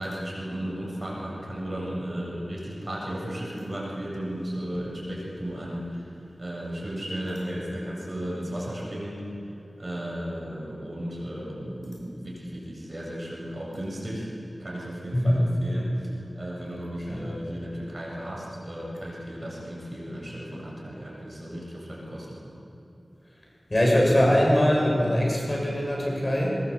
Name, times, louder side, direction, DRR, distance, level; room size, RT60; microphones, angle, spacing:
voice 1, 0.0-6.1 6.4-9.2 9.8-14.3 14.6-22.6, equal, 35° right, -4 dB, 7.6 m, -35 dB
voice 2, 23.7-26.6, equal, 35° left, -2 dB, 6.2 m, -22 dB
23.0 x 20.0 x 8.1 m, 2.9 s
wide cardioid pair, 65°, 0 cm